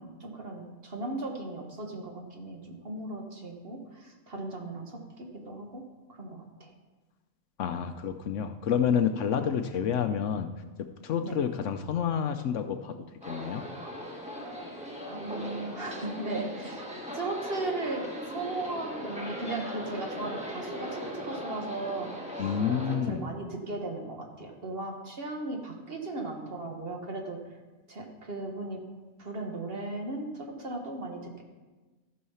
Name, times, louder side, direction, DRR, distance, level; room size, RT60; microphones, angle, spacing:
voice 1, 0.0-5.8 6.1-6.7 9.3-9.5 11.2-11.4 15.1-16.9 17.1-22.1 22.9-27.4 27.9-28.8 29.2-31.4, right 2 dB, 45° right, 1 dB, 1.6 m, -37 dB
voice 2, 7.6-10.5 10.8-13.6 22.4-23.2, left 8 dB, 65° left, 8 dB, 0.9 m, -29 dB
sound 1, 13.2-23.0, equal, 5° right, 1.5 m, -38 dB
14.0 x 5.6 x 5.6 m, 1.3 s
omnidirectional pair, 1.5 m